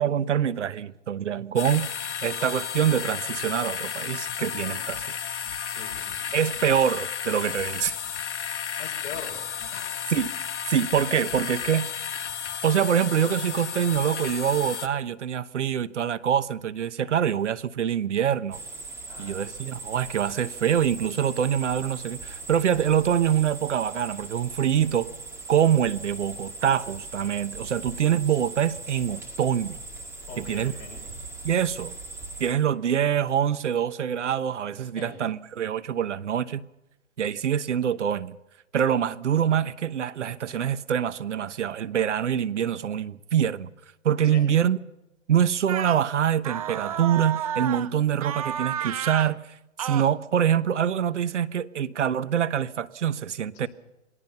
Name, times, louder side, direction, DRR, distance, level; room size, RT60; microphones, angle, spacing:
voice 1, 0.0-1.9 2.2-5.1 6.3-8.0 10.1-10.3 10.7-11.9 12.6-18.6 19.2-25.1 25.5-29.8 30.4-30.7 31.4-31.9 32.4-36.6 37.2-38.4 38.7-43.7 44.0-44.8 45.3-53.7, right 9 dB, 65° right, 1.1 m, -25 dB
sound 1, 1.6-14.9, left 8 dB, 65° left, 1.6 m, -33 dB
voice 2, 5.7-6.2 8.8-9.4 9.7-10.0 19.1-19.5 28.3-28.4 30.3-31.0 35.0-35.2 44.2-44.4 53.5-53.7, left 5 dB, 25° left, 5.9 m, -42 dB
sound 2, 18.5-32.5, right 3 dB, 5° right, 2.1 m, -40 dB
sound 3, 45.7-46.0 46.4-47.9 48.2-49.3 49.8-50.1, right 10 dB, 30° right, 0.8 m, -31 dB
27.5 x 20.0 x 5.7 m
hypercardioid pair, 160°, 38 cm